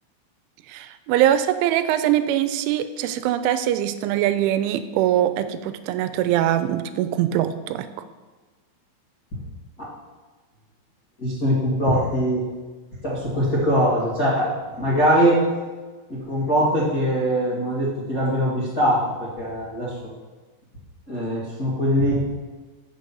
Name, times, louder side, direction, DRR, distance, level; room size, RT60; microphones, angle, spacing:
voice 1, 0.7-7.9, right 11 dB, 85° right, 11 dB, 3.0 m, -22 dB
voice 2, 11.2-12.4 13.0-15.4 16.1-19.9 21.1-22.1, equal, 40° left, -11 dB, 1.2 m, -22 dB
7.8 x 6.5 x 5.3 m, 1.3 s
omnidirectional pair, 5.4 m